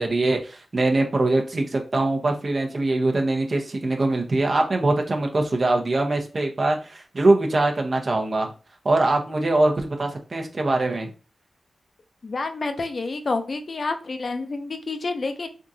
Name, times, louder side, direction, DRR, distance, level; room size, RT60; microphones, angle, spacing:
voice 1, 0.0-8.5 8.8-11.1, right 2 dB, 50° right, 3 dB, 0.8 m, -22 dB
voice 2, 12.2-15.5, left 3 dB, 55° left, 6 dB, 0.6 m, -28 dB
3.6 x 2.5 x 2.7 m, 0.34 s
cardioid pair, 50°, 0 cm